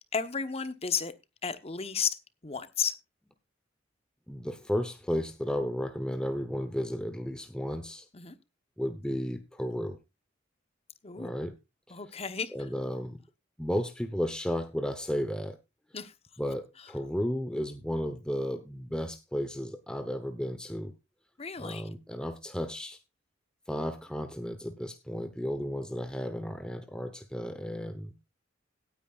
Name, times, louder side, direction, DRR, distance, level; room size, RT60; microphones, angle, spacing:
voice 1, 0.1-1.1 1.4-2.2 2.4-2.9 8.1-8.3 11.0-11.3 11.9-12.5 15.9-16.1 21.4-21.8, left 6 dB, 30° left, 11 dB, 1.0 m, -33 dB
voice 2, 4.3-8.1 8.8-10.0 11.1-11.5 11.9-12.0 12.5-13.2 13.6-15.6 16.4-20.9 21.6-23.0 23.7-28.2, equal, 5° left, 8 dB, 0.9 m, -33 dB
17.5 x 9.4 x 2.4 m, 0.24 s
head